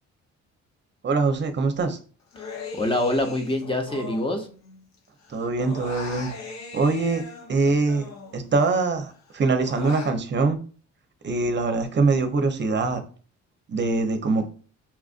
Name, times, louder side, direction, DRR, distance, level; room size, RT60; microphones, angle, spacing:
voice 1, 1.0-2.0 5.3-6.3 6.7-7.2 7.5-8.1 8.3-10.6 11.2-13.0 13.7-14.4, right 3 dB, 35° right, 7 dB, 0.8 m, -23 dB
Human voice, 2.3-5.0 5.2-8.7 9.1-10.2, left 4 dB, 60° left, 0.9 m, -40 dB
voice 2, 2.4-4.5, left 1 dB, 20° left, 3 dB, 0.9 m, -26 dB
5.7 x 2.5 x 2.5 m, 0.39 s
cardioid pair, 90°, 30 cm